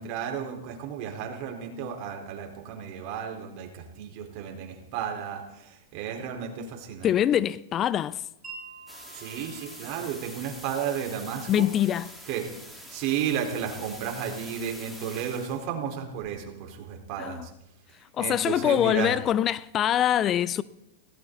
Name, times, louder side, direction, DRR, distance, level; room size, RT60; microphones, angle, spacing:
voice 1, 0.0-7.1 9.1-11.7 12.3-12.5 12.9-17.5 18.2-19.1, right 8 dB, 50° right, 4.2 m, -33 dB
voice 2, 7.0-8.2 11.5-12.1 17.2-17.5 18.1-20.6, left 10 dB, 30° left, 0.5 m, -24 dB
Wind chime, 8.4-14.5, right 4 dB, 20° right, 5.9 m, -50 dB
sound 1, 8.9-15.6, equal, ahead, 3.8 m, -45 dB
19.0 x 17.5 x 4.0 m
hypercardioid pair, 120°, 0 cm